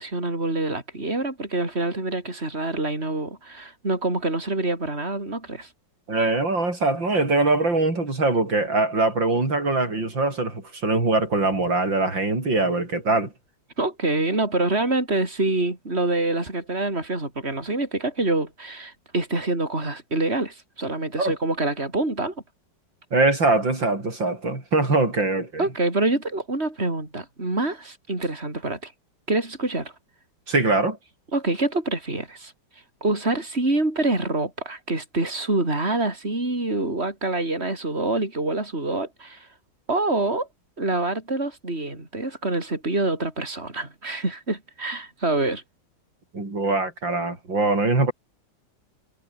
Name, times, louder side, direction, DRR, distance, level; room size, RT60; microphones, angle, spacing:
voice 1, 0.0-5.7 13.8-22.3 25.6-28.9 29.3-29.9 31.3-32.5 33.0-39.5 39.9-40.5 40.8-45.6, right 2 dB, 35° right, 6.0 m, -26 dB
voice 2, 6.1-13.3 21.2-21.3 23.1-25.7 30.5-31.0 46.3-48.1, right 2 dB, 85° right, 6.9 m, -22 dB
omnidirectional pair, 2.0 m